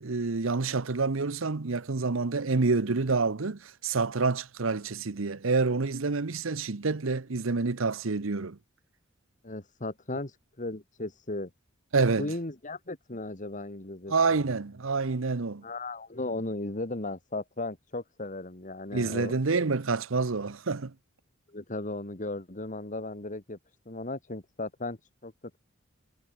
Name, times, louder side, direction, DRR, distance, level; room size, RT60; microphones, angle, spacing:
voice 1, 0.0-8.6 11.9-12.3 14.1-15.6 18.9-20.9, right 4 dB, 80° right, 0.9 m, -28 dB
voice 2, 9.4-11.5 12.2-14.4 15.6-19.3 21.5-23.6 23.9-25.6, left 2 dB, 40° left, 2.2 m, -36 dB
head